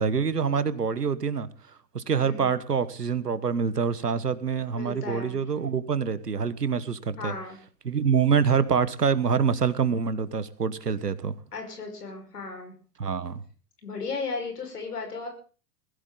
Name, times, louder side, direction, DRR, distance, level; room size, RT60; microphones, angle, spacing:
voice 1, 0.0-1.5 1.9-7.3 7.8-11.3 13.0-13.4, right 6 dB, 90° right, 15 dB, 1.4 m, -26 dB
voice 2, 2.1-2.5 4.7-5.4 7.2-7.6 11.5-12.7 13.8-15.3, left 4 dB, 80° left, 3 dB, 5.2 m, -35 dB
20.5 x 15.5 x 3.9 m, 0.40 s
figure-of-eight pair, 90°, 46 cm